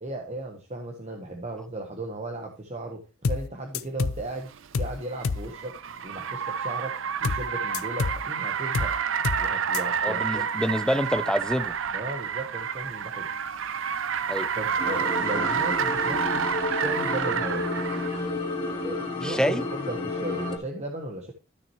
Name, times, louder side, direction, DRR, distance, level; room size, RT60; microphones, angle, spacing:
voice 1, 0.0-4.5 4.7-5.8 6.0-8.9 9.4-10.4 11.9-13.3 14.5-17.6 18.8-21.3, right 1 dB, 30° right, 1.2 m, -36 dB
sound 1, 3.2-3.5 3.7-4.2 4.7-5.0 5.2-5.5 7.2-7.5 7.7-8.2 8.7-9.0 9.2-9.5 9.7-9.8, left 4 dB, 75° left, 0.5 m, -28 dB
Car, 4.3-18.2, right 7 dB, 65° right, 0.5 m, -29 dB
voice 2, 10.0-11.7 14.3-14.5 19.2-19.6, equal, 5° left, 0.6 m, -26 dB
sound 2, 14.8-20.6, left 2 dB, 25° left, 2.4 m, -31 dB
13.0 x 6.1 x 3.1 m
head